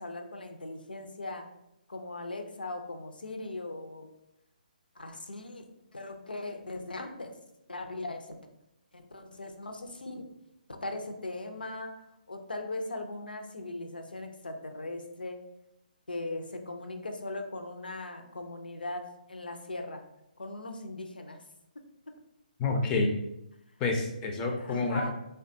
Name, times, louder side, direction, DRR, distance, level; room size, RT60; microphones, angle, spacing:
voice 1, 0.0-1.5 1.9-4.1 5.0-5.7 5.9-7.3 7.7-8.4 8.9-10.3 10.7-15.4 16.1-20.0 20.4-21.4 22.1-22.2 24.6-25.1, left 2 dB, 80° left, 6 dB, 0.4 m, -39 dB
voice 2, 22.6-23.1 23.8-25.1, left 3 dB, 15° left, 3 dB, 0.3 m, -28 dB
3.3 x 2.2 x 2.6 m, 0.86 s
figure-of-eight pair, 140°, 5 cm